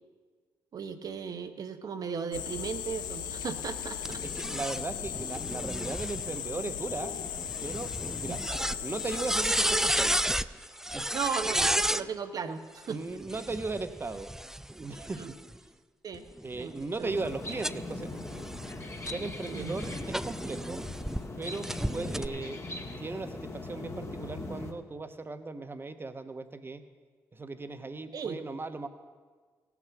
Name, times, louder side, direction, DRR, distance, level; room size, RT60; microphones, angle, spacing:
voice 1, 0.7-4.2 8.2-8.4 11.1-13.0 15.2-15.3 16.0-16.2 16.6-17.1 19.5-19.8 28.1-28.4, right 6 dB, 60° right, 8 dB, 1.0 m, -36 dB
sound 1, 2.3-10.2, left 9 dB, 80° left, 0.6 m, -37 dB
sound 2, 4.0-12.0 13.2-15.6 16.1-21.2 21.6-22.3, right 1 dB, 5° right, 0.4 m, -33 dB
voice 2, 4.3-7.1 7.6-7.9 8.2-8.4 8.8-10.2 10.9-11.2 12.9-14.3 14.7-15.2 16.4-18.1 19.0-20.8 21.4-22.6 23.0-26.8 27.3-28.9, right 3 dB, 30° right, 9 dB, 1.0 m, -37 dB
sound 3, 17.0-24.7, left 2 dB, 40° left, 1.5 m, -40 dB
16.5 x 6.0 x 7.0 m, 1.5 s
supercardioid pair, 50°, 7 cm